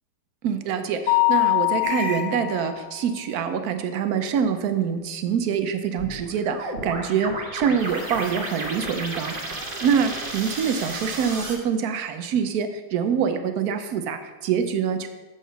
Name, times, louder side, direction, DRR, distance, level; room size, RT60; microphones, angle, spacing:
voice 1, 0.4-9.4 9.7-15.1, right 7 dB, 75° right, 8 dB, 0.8 m, -25 dB
Mallet percussion, 1.1-2.9, left 25 dB, 60° left, 1.1 m, -22 dB
sound 1, 1.8-2.3 6.0-11.6, right 2 dB, 30° right, 1.1 m, -33 dB
8.1 x 6.1 x 5.7 m, 1.2 s
omnidirectional pair, 2.3 m